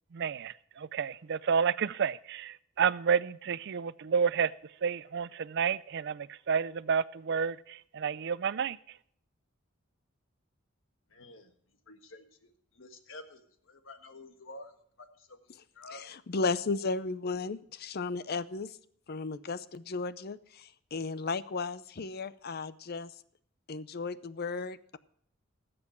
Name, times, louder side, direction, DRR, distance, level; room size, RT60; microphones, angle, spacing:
voice 1, 0.1-4.5 4.8-8.8, right 6 dB, 55° right, 0.4 m, -30 dB
voice 2, 11.1-11.5 11.9-16.0, left 2 dB, 70° left, 1.5 m, -50 dB
voice 3, 15.9-18.7 19.1-23.1 23.7-25.0, left 4 dB, 50° left, 0.6 m, -35 dB
19.5 x 7.8 x 4.4 m
head